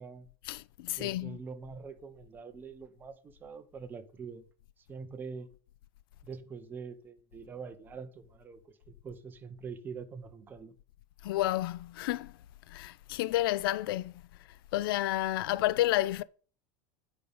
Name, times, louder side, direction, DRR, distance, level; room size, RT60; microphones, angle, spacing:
voice 1, 0.5-1.4 11.2-12.3 12.7-14.1 14.7-16.2, left 15 dB, 75° left, 0.4 m, -30 dB
voice 2, 1.0-4.4 4.9-5.5 6.2-8.8 9.0-10.7, right 5 dB, 15° right, 0.7 m, -44 dB
9.2 x 5.4 x 5.1 m
supercardioid pair, 165°, 12 cm